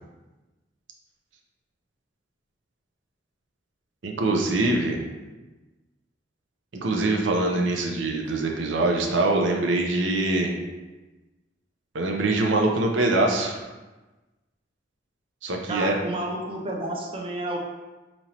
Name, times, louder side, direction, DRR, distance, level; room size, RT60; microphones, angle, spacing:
voice 1, 4.0-5.0 6.8-10.5 11.9-13.6 15.4-15.9, right 2 dB, 80° right, 1 dB, 0.6 m, -23 dB
voice 2, 15.7-17.6, right 1 dB, 30° right, -1 dB, 0.6 m, -30 dB
5.2 x 2.9 x 2.9 m, 1.1 s
head